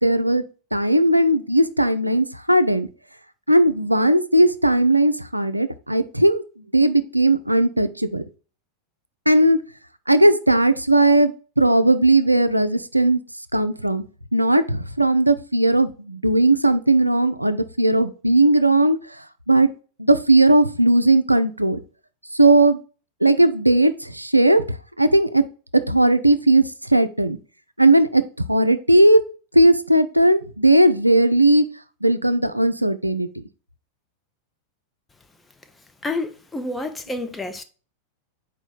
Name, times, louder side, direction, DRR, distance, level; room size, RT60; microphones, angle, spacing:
voice 1, 0.0-0.4 0.7-2.9 3.5-6.4 6.7-8.2 9.3-9.6 10.1-13.2 13.5-14.0 14.3-19.0 19.5-19.7 20.0-21.8 22.3-22.8 23.2-24.6 25.0-25.4 25.7-27.4 27.8-28.2 28.5-29.2 29.5-31.6 32.0-33.3, right 1 dB, 85° right, 0.3 m, -17 dB
voice 2, 36.0-37.6, left 2 dB, 10° left, 0.6 m, -29 dB
4.4 x 3.0 x 3.9 m
figure-of-eight pair, 90°, 0 cm